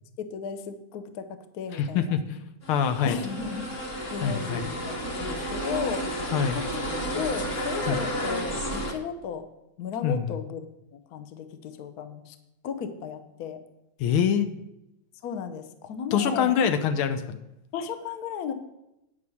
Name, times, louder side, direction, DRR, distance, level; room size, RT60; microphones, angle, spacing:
voice 1, 0.3-2.2 3.0-3.7 4.1-4.8 5.2-6.7 7.0-9.5 9.8-10.6 10.9-12.4 12.6-13.6 15.2-16.5 17.7-18.5, left 7 dB, 60° left, 10 dB, 1.1 m, -35 dB
voice 2, 1.7-2.4 2.7-3.2 4.2-4.7 6.3-6.6 7.9-8.0 10.0-10.3 14.0-14.5 16.1-17.4, left 7 dB, 85° left, 9 dB, 1.7 m, -25 dB
sound 1, 2.6-8.9, equal, 40° left, 1.6 m, -32 dB
9.6 x 5.4 x 7.0 m, 0.89 s
omnidirectional pair, 2.3 m